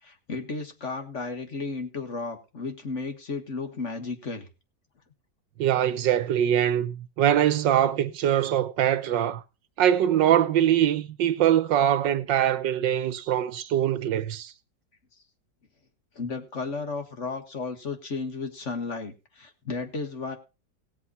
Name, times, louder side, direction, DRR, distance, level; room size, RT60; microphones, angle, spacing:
voice 1, 0.0-4.5 16.2-20.4, left 4 dB, 40° left, 1.8 m, -34 dB
voice 2, 5.6-9.4 9.8-14.5, right 10 dB, 85° right, 1.6 m, -23 dB
17.0 x 7.8 x 4.1 m
omnidirectional pair, 1.9 m